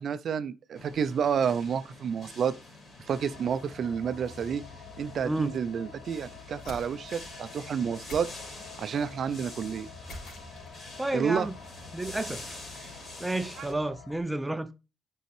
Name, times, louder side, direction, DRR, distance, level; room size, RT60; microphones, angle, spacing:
voice 1, 0.0-2.5 3.1-4.6 5.0-8.3 8.8-9.9 11.1-11.5 13.6-13.7, right 7 dB, 60° right, 0.5 m, -30 dB
sound 1, 0.7-13.7, left 2 dB, 45° left, 3.0 m, -47 dB
sound 2, 3.1-14.2, left 4 dB, 70° left, 1.8 m, -49 dB
sound 3, 6.6-7.4 8.1-9.0 10.1-11.0, left 1 dB, 90° left, 3.8 m, -46 dB
voice 2, 11.0-11.5 11.9-12.9 13.2-14.7, right 2 dB, 10° right, 0.7 m, -31 dB
9.2 x 5.5 x 3.2 m
cardioid pair, 90°, 0 cm